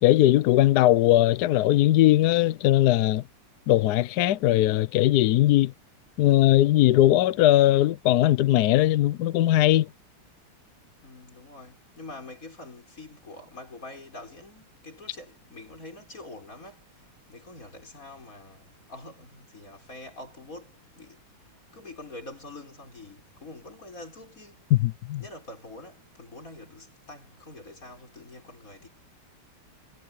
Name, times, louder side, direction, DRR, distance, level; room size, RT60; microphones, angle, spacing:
voice 1, 0.0-3.2 3.7-5.7 6.2-9.9 24.8-25.2, left 14 dB, 80° left, 0.8 m, -20 dB
voice 2, 11.0-21.3 21.7-24.7 25.2-28.9, left 2 dB, 35° left, 6.5 m, -45 dB
omnidirectional pair, 2.4 m